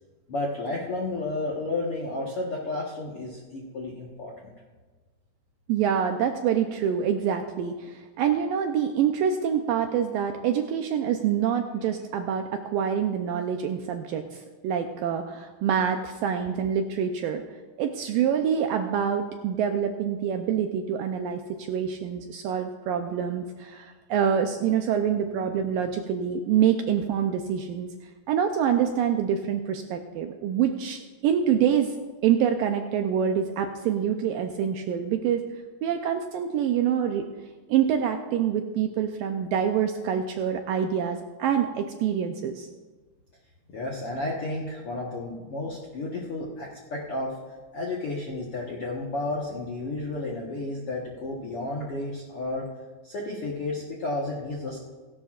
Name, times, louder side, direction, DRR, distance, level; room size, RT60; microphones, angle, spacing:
voice 1, 0.3-4.5 43.7-47.4 47.7-52.7 53.0-54.9, left 2 dB, 65° left, -4 dB, 1.4 m, -32 dB
voice 2, 5.7-17.4 17.8-27.9 28.3-35.4 35.8-37.3 37.7-42.7, right 8 dB, 80° right, 5 dB, 2.1 m, -26 dB
17.0 x 16.5 x 2.5 m, 1.3 s
omnidirectional pair, 4.6 m